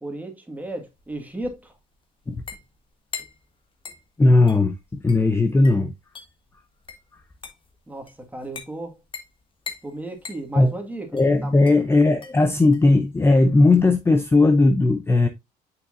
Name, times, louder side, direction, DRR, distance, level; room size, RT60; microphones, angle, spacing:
voice 1, 0.0-1.7 7.9-9.0 9.8-11.1 11.4-11.5, right 1 dB, 10° right, 1.8 m, -34 dB
sound 1, 0.6-14.6, left 5 dB, 30° left, 1.3 m, -43 dB
voice 2, 4.2-5.9 10.5-10.7 11.1-15.3, left 2 dB, 15° left, 0.6 m, -17 dB
6.3 x 5.9 x 2.6 m
cardioid pair, 110°, 17 cm